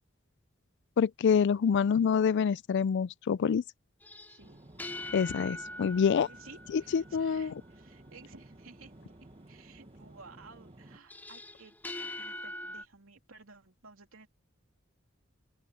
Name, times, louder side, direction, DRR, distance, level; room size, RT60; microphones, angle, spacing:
voice 1, 1.0-3.6 5.1-6.3 6.7-7.5, left 6 dB, 60° left, 0.3 m, -26 dB
sound 1, 4.0-7.5 11.1-12.9, left 1 dB, 10° left, 2.4 m, -42 dB
voice 2, 4.3-4.6 5.9-14.3, right 4 dB, 80° right, 3.1 m, -55 dB
sound 2, 4.4-11.0, right 1 dB, 30° right, 1.4 m, -54 dB
open air
head